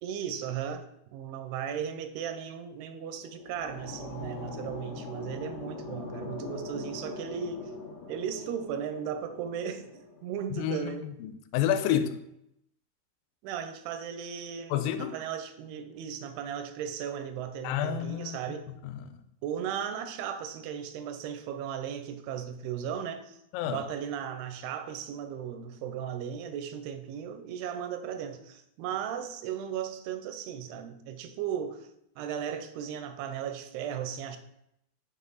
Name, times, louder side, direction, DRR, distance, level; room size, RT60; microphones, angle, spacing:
voice 1, 0.0-0.9 1.1-7.7 8.1-11.1 11.9-12.0 13.4-18.7 19.4-23.4 23.6-31.9 32.2-34.4, right 8 dB, 85° right, 8 dB, 2.6 m, -36 dB
sound 1, 3.1-10.2, left 3 dB, 70° left, 2.6 m, -42 dB
voice 2, 10.6-12.1 14.7-15.2 17.6-18.4 18.8-19.2 23.5-23.8, left 10 dB, 85° left, 9 dB, 2.1 m, -29 dB
6.2 x 5.5 x 3.8 m, 0.79 s
omnidirectional pair, 4.6 m